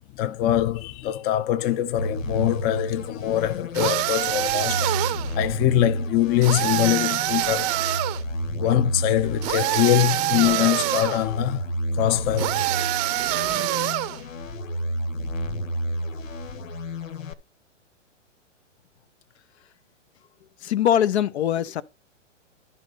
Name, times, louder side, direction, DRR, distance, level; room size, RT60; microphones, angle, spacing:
voice 1, 0.2-4.9 5.3-7.8 8.6-11.6 11.9-12.6, left 13 dB, 25° left, 0.7 m, -23 dB
sound 1, 2.0-17.3, equal, 80° left, 1.6 m, -31 dB
sound 2, 3.7-5.3 6.4-8.2 9.4-11.2 12.4-14.2, right 17 dB, 30° right, 0.7 m, -25 dB
voice 2, 20.6-21.8, left 10 dB, 60° left, 1.0 m, -22 dB
12.0 x 4.1 x 6.6 m
hypercardioid pair, 130°, 38 cm